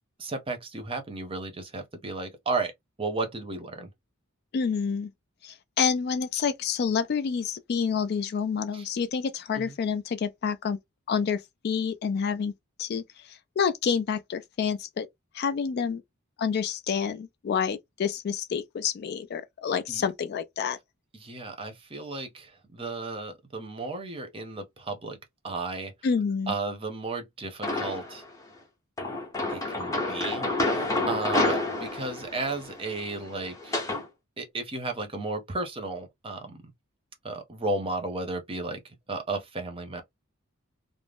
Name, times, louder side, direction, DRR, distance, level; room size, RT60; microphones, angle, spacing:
voice 1, 0.2-2.7 3.0-3.9 8.7-8.9 9.5-9.7 19.9-20.1 21.2-25.2 25.4-25.9 26.5-28.2 29.5-33.8 34.4-36.6 37.2-40.0, right 3 dB, 25° right, 0.6 m, -34 dB
voice 2, 4.5-5.1 5.4-10.8 11.1-12.5 12.8-15.1 15.3-16.0 16.4-20.8 26.0-26.5, left 6 dB, 50° left, 0.3 m, -28 dB
sound 1, 27.6-28.2 29.0-34.0, left 2 dB, 15° left, 0.7 m, -29 dB
2.4 x 2.0 x 3.4 m
head